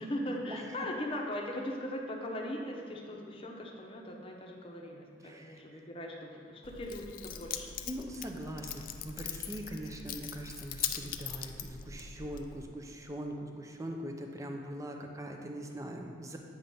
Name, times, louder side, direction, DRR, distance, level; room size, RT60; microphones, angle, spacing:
voice 1, 0.0-7.7 15.0-15.1, left 1 dB, 30° left, 0 dB, 0.8 m, -39 dB
voice 2, 5.2-5.8 7.9-16.4, right 1 dB, 15° right, 2 dB, 0.6 m, -42 dB
Keys jangling, 6.6-12.6, left 9 dB, 45° left, 0.4 m, -41 dB
8.7 x 3.8 x 5.5 m, 2.4 s
head